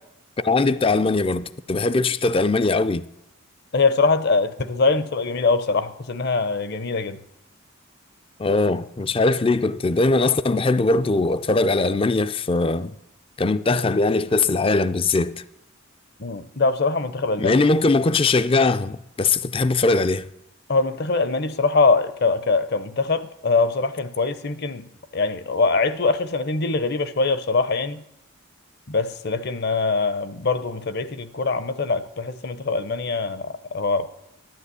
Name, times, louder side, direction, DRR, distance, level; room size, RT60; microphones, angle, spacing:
voice 1, 0.4-3.0 8.4-12.9 13.4-15.4 17.4-20.3, left 3 dB, 25° left, 0.4 m, -20 dB
voice 2, 3.7-7.2 16.2-17.6 20.7-24.9 25.1-28.0 28.9-34.1, left 3 dB, 50° left, 0.8 m, -23 dB
12.5 x 11.0 x 8.4 m
head